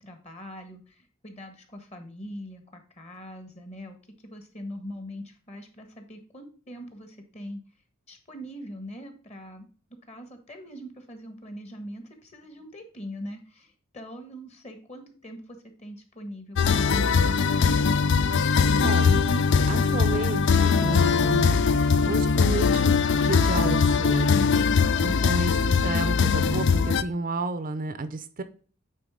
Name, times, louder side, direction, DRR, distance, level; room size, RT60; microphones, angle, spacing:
voice 1, 0.0-4.0 4.2-7.6 8.1-9.7 10.1-15.4 15.8-17.1, equal, 30° left, 5 dB, 1.5 m, -42 dB
sound 1, 16.6-27.0, left 5 dB, 60° left, 0.4 m, -21 dB
voice 2, 18.8-19.2 19.7-21.7 22.1-24.5 25.0-28.4, right 3 dB, 40° right, 11 dB, 0.6 m, -31 dB
9.1 x 3.9 x 3.7 m, 0.41 s
head